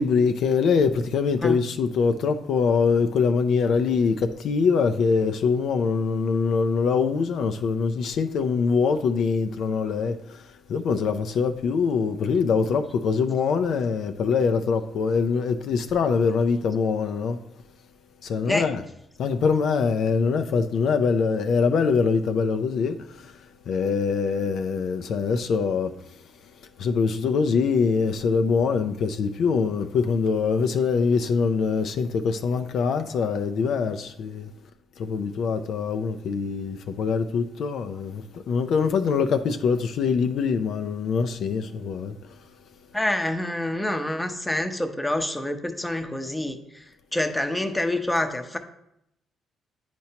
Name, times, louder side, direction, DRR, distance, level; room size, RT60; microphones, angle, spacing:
voice 1, 0.0-17.4 18.2-18.8 19.2-23.4 23.7-26.0 26.8-34.5 35.0-42.2, left 5 dB, 70° left, 0.4 m, -23 dB
voice 2, 42.9-46.8 47.1-48.6, left 1 dB, 10° left, 0.7 m, -27 dB
9.2 x 4.4 x 2.9 m
cardioid pair, 90°, 0 cm